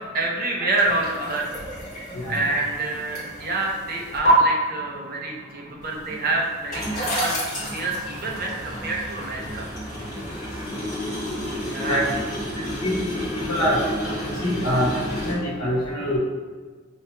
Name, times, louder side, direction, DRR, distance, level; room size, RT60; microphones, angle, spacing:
voice 1, 0.0-1.6 2.3-9.7 11.6-12.0, right 2 dB, 45° right, -2 dB, 0.6 m, -27 dB
sound 1, 0.8-4.3 5.8-15.3, equal, 35° left, 1.4 m, -30 dB
voice 2, 14.4-14.9 15.2-16.2, equal, 90° left, -5 dB, 0.9 m, -24 dB
4.9 x 2.8 x 2.2 m, 1.5 s
head